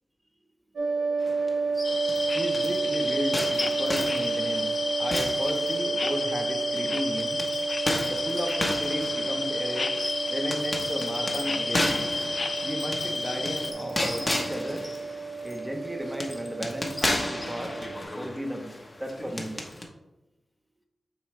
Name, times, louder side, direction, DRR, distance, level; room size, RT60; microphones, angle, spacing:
sound 1, 0.8-18.0, right 4 dB, 90° right, 1.3 m, -31 dB
sound 2, 1.2-2.8 3.3-6.2 6.8-19.8, left 1 dB, 30° left, 1.0 m, -34 dB
sound 3, 1.8-13.7, left 3 dB, 50° left, 0.4 m, -32 dB
voice 1, 2.3-7.4 8.1-9.9 10.3-12.1 12.6-14.9 15.4-17.8 18.1-18.7 19.0-19.6, equal, 10° right, 3 dB, 0.9 m, -34 dB
7.1 x 4.2 x 3.2 m, 1.0 s
cardioid pair, 70°, 0 cm